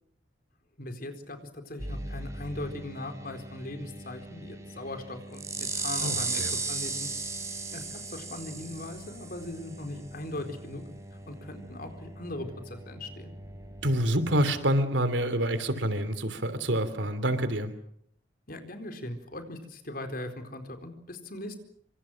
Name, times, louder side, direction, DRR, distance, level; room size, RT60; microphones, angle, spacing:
voice 1, 0.8-7.1 7.7-10.8 11.3-13.3 18.5-21.5, left 1 dB, 55° left, 6 dB, 4.4 m, -39 dB
sound 1, 1.8-14.6, right 3 dB, 15° right, 6.5 m, -38 dB
voice 2, 6.0-6.5 13.8-17.7, right 1 dB, 85° right, 12 dB, 3.0 m, -27 dB
28.0 x 26.0 x 6.4 m, 0.67 s
head